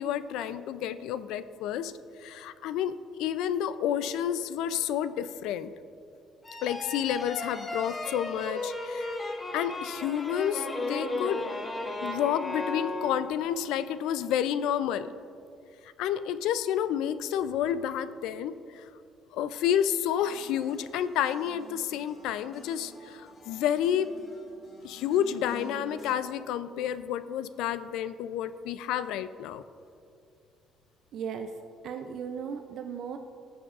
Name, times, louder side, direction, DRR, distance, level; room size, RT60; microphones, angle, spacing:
voice 1, 0.0-1.9 2.2-5.7 6.6-9.2 9.5-11.4 12.0-15.1 15.8-18.9 19.3-24.2 24.8-29.6, left 10 dB, 90° left, 14 dB, 0.3 m, -30 dB
sound 1, 6.4-13.6, left 2 dB, 20° left, 0.7 m, -35 dB
sound 2, 20.2-26.1, left 1 dB, 40° left, 1.5 m, -50 dB
voice 2, 31.1-31.5 31.8-33.2, right 7 dB, 65° right, 6 dB, 0.4 m, -36 dB
16.5 x 7.0 x 2.4 m, 2.4 s
cardioid pair, 120°, 0 cm